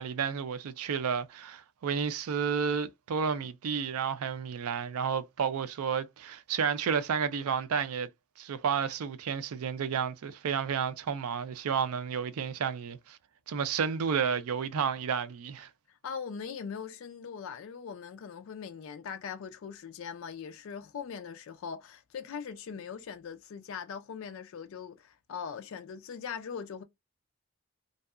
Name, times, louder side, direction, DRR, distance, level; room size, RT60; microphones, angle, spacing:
voice 1, 0.0-8.1 8.4-13.2 13.5-15.7, right 6 dB, 80° right, 0.4 m, -31 dB
voice 2, 15.9-26.8, left 6 dB, 65° left, 0.3 m, -41 dB
2.7 x 2.2 x 2.3 m
head